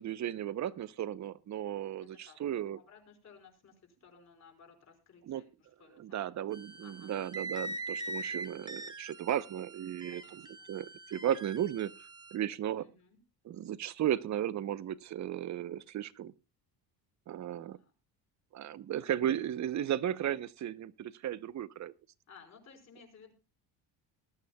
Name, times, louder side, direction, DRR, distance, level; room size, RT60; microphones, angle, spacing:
voice 1, 0.0-2.8 5.3-5.4 6.0-12.9 13.4-16.3 17.3-17.8 18.5-21.9, right 11 dB, 45° right, 0.8 m, -35 dB
voice 2, 2.0-2.4 2.7-6.5 6.8-7.2 10.1-10.7 12.8-13.2 17.6-17.9 19.0-19.1 22.3-23.3, left 6 dB, 40° left, 4.6 m, -58 dB
sound 1, 6.5-12.4, right 2 dB, 10° right, 1.1 m, -43 dB
20.5 x 12.5 x 2.2 m
cardioid pair, 150°, 40 cm